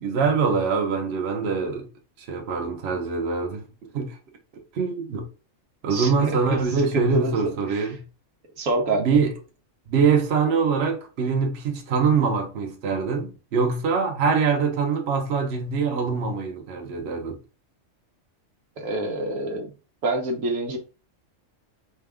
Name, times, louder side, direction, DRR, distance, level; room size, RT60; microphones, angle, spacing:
voice 1, 0.0-1.9 2.2-3.7 3.9-4.1 4.7-5.3 5.8-8.0 9.0-9.3 9.9-17.4, right 5 dB, 55° right, 1.0 m, -24 dB
voice 2, 5.9-6.6 6.9-7.9 8.6-9.0 18.8-19.7 20.0-20.8, right 2 dB, 80° right, 1.2 m, -27 dB
4.5 x 2.3 x 3.4 m
omnidirectional pair, 1.4 m